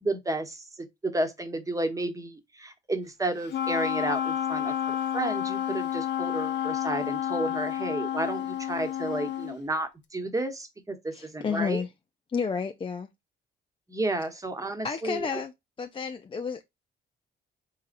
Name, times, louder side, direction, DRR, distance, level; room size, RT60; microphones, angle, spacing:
voice 1, 0.0-11.8 13.9-15.4, right 2 dB, 15° right, 1.0 m, -32 dB
Wind instrument woodwind instrument, 3.5-9.6, left 10 dB, 65° left, 0.7 m, -30 dB
voice 2, 11.1-11.9 12.3-13.1 14.8-15.5 15.8-16.6, left 5 dB, 25° left, 0.4 m, -31 dB
4.1 x 3.9 x 2.5 m
cardioid pair, 90°, 20 cm